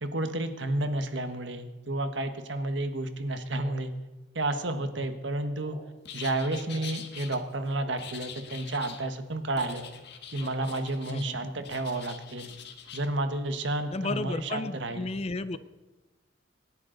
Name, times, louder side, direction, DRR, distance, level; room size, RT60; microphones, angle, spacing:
voice 1, 0.0-3.9 4.3-5.8 6.1-9.9 10.3-12.5 12.9-15.1, right 2 dB, 65° right, 8 dB, 1.4 m, -31 dB
sound 1, 3.5-3.8 4.7-4.8 5.6-5.9 6.6-6.9 7.8-8.0 9.6-9.9 10.5-10.8, right 1 dB, 40° right, 2.9 m, -48 dB
sound 2, 6.0-7.4 8.0-9.0 9.6-11.3 11.6-13.1, left 8 dB, 60° left, 1.5 m, -44 dB
voice 2, 11.1-11.4 13.9-15.6, left 2 dB, 30° left, 14 dB, 0.5 m, -33 dB
26.0 x 11.0 x 4.0 m, 1.1 s
head